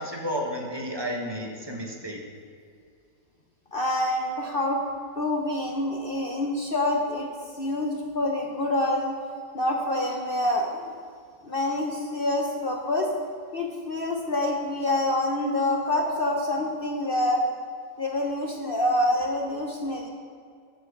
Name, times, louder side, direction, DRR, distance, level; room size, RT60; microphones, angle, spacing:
voice 1, 0.0-2.2, equal, 15° right, 0 dB, 1.1 m, -32 dB
voice 2, 3.7-4.8 5.2-7.3 7.5-9.1 9.5-10.9 11.4-13.1 13.5-17.4 18.0-20.1, left 1 dB, 45° left, 1 dB, 0.7 m, -26 dB
9.3 x 7.6 x 6.6 m, 2.3 s
omnidirectional pair, 2.1 m